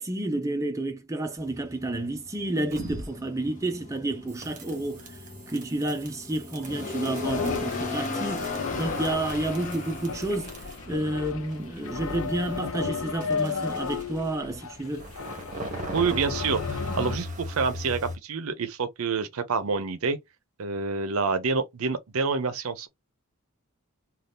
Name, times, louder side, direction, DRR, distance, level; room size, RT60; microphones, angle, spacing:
voice 1, 0.0-5.1 5.5-10.5 10.9-15.1, right 1 dB, 15° right, 0.4 m, -30 dB
sound 1, 1.4-15.8, left 3 dB, 35° left, 0.8 m, -38 dB
sound 2, 2.7-3.3 4.3-11.0 11.2-14.3 14.9-18.2, right 1 dB, 35° right, 0.9 m, -40 dB
sound 3, 7.2-17.2, left 5 dB, 65° left, 0.5 m, -34 dB
voice 2, 15.9-20.2 20.6-22.9, right 4 dB, 70° right, 0.6 m, -27 dB
2.6 x 2.3 x 3.4 m
head